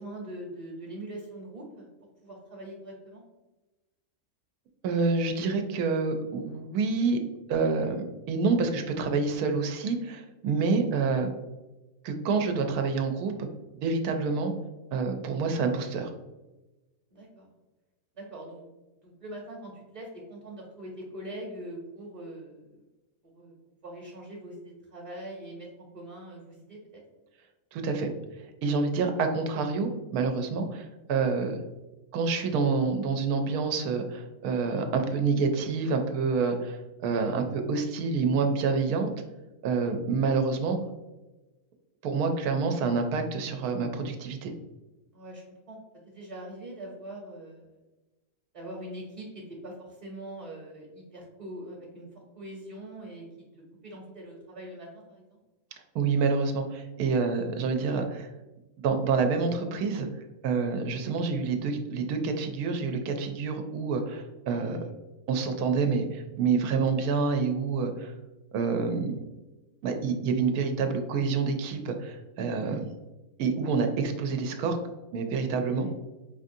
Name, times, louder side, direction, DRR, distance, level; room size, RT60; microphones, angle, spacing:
voice 1, 0.0-1.9 2.2-3.2 10.6-10.8 17.1-17.5 18.1-18.6 19.0-22.8 23.3-23.5 23.8-25.7 25.9-27.0 39.7-39.9 45.1-45.8 46.1-47.7 48.5-49.7 50.0-52.1 52.4-53.2 53.8-55.4 75.6-75.9, right 1 dB, 35° right, -4 dB, 0.9 m, -42 dB
voice 2, 4.8-7.2 7.5-11.3 12.0-13.3 13.8-14.5 14.9-16.1 27.7-28.1 28.6-31.6 32.1-39.1 39.6-40.8 42.0-44.5 55.9-58.3 58.8-60.1 60.4-64.8 65.3-68.1 68.5-69.1 69.8-72.8 73.4-74.8 75.1-75.9, right 4 dB, 85° right, 5 dB, 1.1 m, -27 dB
5.0 x 2.5 x 2.6 m, 1.1 s
omnidirectional pair, 1.5 m